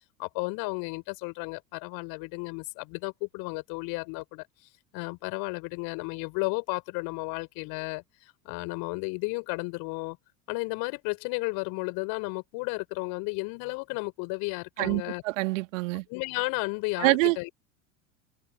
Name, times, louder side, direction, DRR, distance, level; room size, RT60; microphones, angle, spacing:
voice 1, 0.2-4.5 4.9-10.2 10.5-15.2 16.1-17.5, left 29 dB, 55° left, 4.4 m, -33 dB
voice 2, 14.8-16.0 17.0-17.4, right 22 dB, 60° right, 1.7 m, -26 dB
figure-of-eight pair, 80°, 43 cm